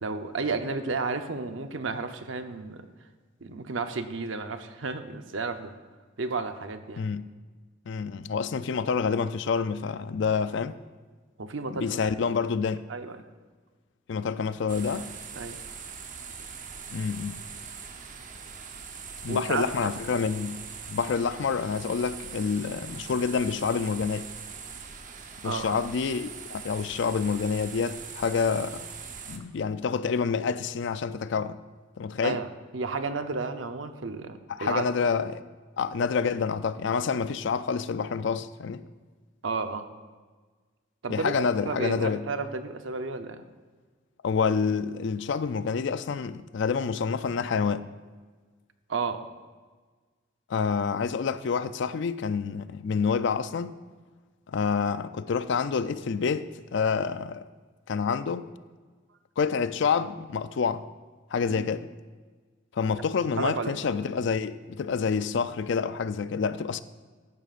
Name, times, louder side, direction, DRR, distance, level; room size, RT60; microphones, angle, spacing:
voice 1, 0.0-2.9 3.4-5.7 6.2-7.1 11.4-12.1 12.9-13.3 15.4-15.6 19.3-19.9 25.4-25.8 32.2-32.5 32.7-34.9 39.4-39.8 41.0-43.4 48.9-49.2 61.5-61.7 63.4-63.7, right 4 dB, 80° right, 0.8 m, -32 dB
voice 2, 7.9-10.8 11.7-12.8 14.1-15.1 16.9-17.4 19.2-20.6 20.9-24.3 25.4-28.8 29.3-31.6 32.0-32.4 34.5-35.5 35.8-38.9 41.1-42.3 44.2-47.9 50.5-53.7 54.5-57.5 57.9-58.5 59.4-60.9 61.3-61.9 62.7-66.8, left 5 dB, 65° left, 0.4 m, -28 dB
sound 1, 14.7-29.4, right 6 dB, 45° right, 0.9 m, -42 dB
14.5 x 11.0 x 2.5 m
head